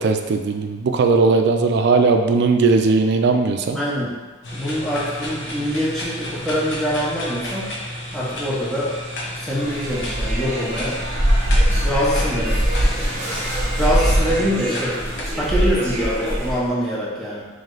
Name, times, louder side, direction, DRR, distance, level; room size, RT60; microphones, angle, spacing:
voice 1, 0.0-3.8, right 4 dB, 55° right, 5 dB, 0.3 m, -18 dB
voice 2, 3.7-4.1 4.5-7.7 8.1-9.0 9.3-11.0 11.5-12.9 13.8-15.0 15.3-17.4, equal, ahead, -8 dB, 0.8 m, -24 dB
sound 1, 4.4-15.2, left 1 dB, 60° left, 0.8 m, -32 dB
sound 2, 9.5-16.7, equal, 35° right, 1.0 m, -22 dB
3.2 x 3.1 x 3.8 m, 1.3 s
head